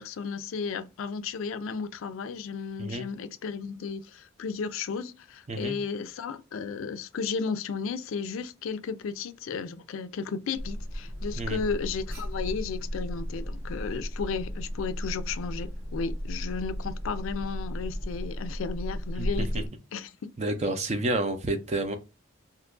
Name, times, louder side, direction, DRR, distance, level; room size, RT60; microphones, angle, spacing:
voice 1, 0.0-19.6 19.9-20.1, left 5 dB, 80° left, 0.4 m, -34 dB
Alarm, 10.6-19.7, equal, 90° right, 1.5 m, -34 dB
voice 2, 20.4-22.0, right 2 dB, 35° right, 0.5 m, -29 dB
2.8 x 2.4 x 3.6 m
head